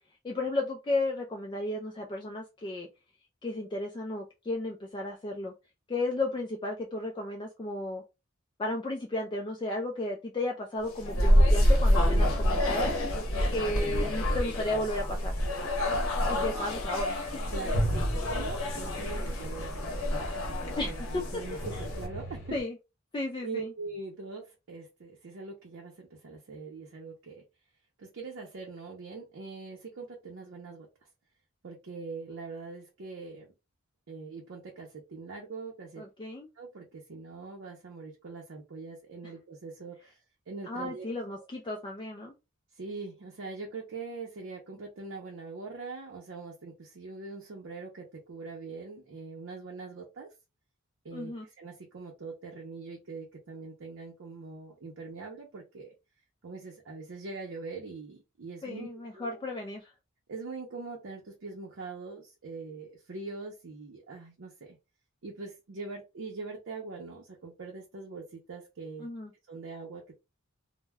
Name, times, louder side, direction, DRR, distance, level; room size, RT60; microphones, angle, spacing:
voice 1, 0.2-2.9 3.4-5.5 5.9-8.0 8.6-12.9 13.5-15.3 16.3-17.4 20.8-21.2 21.5-21.8 22.5-22.8 23.1-23.7 36.0-36.5 40.7-42.3 51.1-51.5 58.6-59.9 69.0-69.3, left 2 dB, 20° left, 1 dB, 0.3 m, -34 dB
sound 1, 10.9-22.1, equal, 75° left, 0.8 m, -27 dB
sound 2, 16.3-22.6, right 1 dB, 50° left, 1.0 m, -37 dB
voice 2, 17.5-22.4 23.4-27.4 28.0-30.9 31.6-33.5 34.1-36.0 36.6-40.2 40.5-41.1 42.7-50.3 51.0-55.9 56.4-59.4 60.3-64.8 65.2-69.1 69.5-70.2, right 3 dB, 60° right, -1 dB, 0.6 m, -42 dB
2.2 x 2.0 x 3.3 m, 0.26 s
head